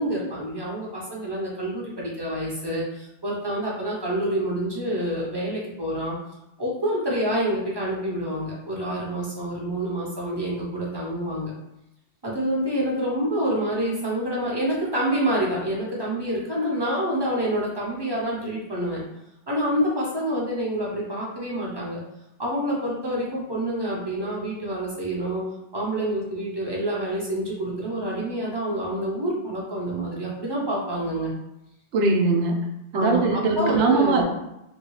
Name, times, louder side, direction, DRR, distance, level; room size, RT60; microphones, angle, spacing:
voice 1, 0.0-6.2 6.6-11.5 12.2-19.0 19.5-22.0 22.4-25.4 25.7-31.3 32.9-33.2 33.6-34.2, right 1 dB, 25° right, -4 dB, 0.6 m, -27 dB
voice 2, 31.9-32.6 32.9-34.2, right 3 dB, 75° right, 3 dB, 0.9 m, -21 dB
2.8 x 2.7 x 3.1 m, 0.88 s
omnidirectional pair, 1.2 m